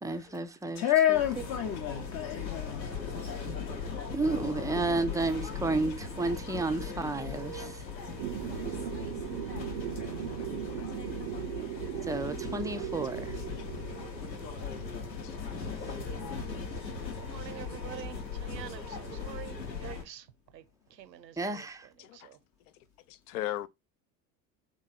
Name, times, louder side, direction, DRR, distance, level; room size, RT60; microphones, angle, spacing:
voice 1, 0.0-1.5 4.1-7.9 12.0-13.4 15.9-16.0 21.4-21.9, right 3 dB, 5° right, 0.5 m, -32 dB
voice 2, 0.8-3.1, left 11 dB, 35° left, 0.8 m, -28 dB
sound 1, 1.1-20.0, left 4 dB, 85° left, 1.0 m, -38 dB
sound 2, 8.2-14.1, right 13 dB, 55° right, 0.5 m, -38 dB
voice 3, 17.2-20.3 20.5-20.6 20.9-21.7 22.1-22.4, right 11 dB, 80° right, 0.8 m, -46 dB
voice 4, 23.1-23.7, left 13 dB, 65° left, 0.6 m, -39 dB
3.7 x 3.1 x 4.1 m
figure-of-eight pair, 75°, 49 cm